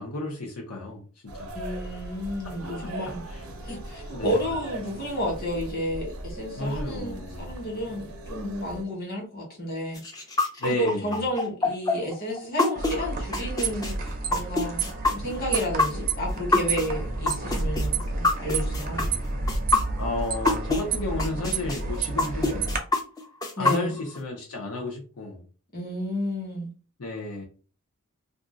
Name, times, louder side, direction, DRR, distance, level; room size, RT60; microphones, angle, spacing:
voice 1, 0.0-1.5 3.3-3.4 4.1-4.5 6.6-7.5 10.6-11.2 20.0-22.8 23.6-25.5 27.0-27.4, left 2 dB, 80° left, 0.8 m, -33 dB
sound 1, 1.3-8.8, right 1 dB, 85° right, 0.7 m, -39 dB
voice 2, 1.5-3.2 3.6-10.0 10.6-13.9 14.3-19.1 23.6-23.9 25.7-26.7, equal, 45° left, 1.4 m, -31 dB
sound 2, 9.9-20.8 21.2-24.2, left 2 dB, 15° left, 0.5 m, -25 dB
sound 3, 12.7-22.8, right 3 dB, 40° right, 0.6 m, -30 dB
2.6 x 2.4 x 3.8 m
head